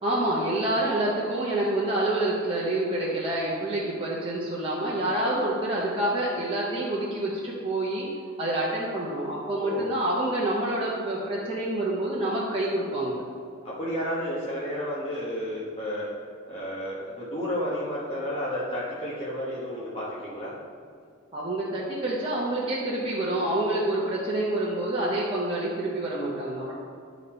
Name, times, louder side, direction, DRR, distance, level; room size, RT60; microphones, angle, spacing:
voice 1, 0.0-8.1 8.4-13.2 21.3-26.7, right 1 dB, 25° right, -7 dB, 1.0 m, -27 dB
voice 2, 9.6-9.9 13.6-16.1 16.5-20.6, equal, 30° left, -8 dB, 1.3 m, -31 dB
10.5 x 4.1 x 4.3 m, 2.2 s
head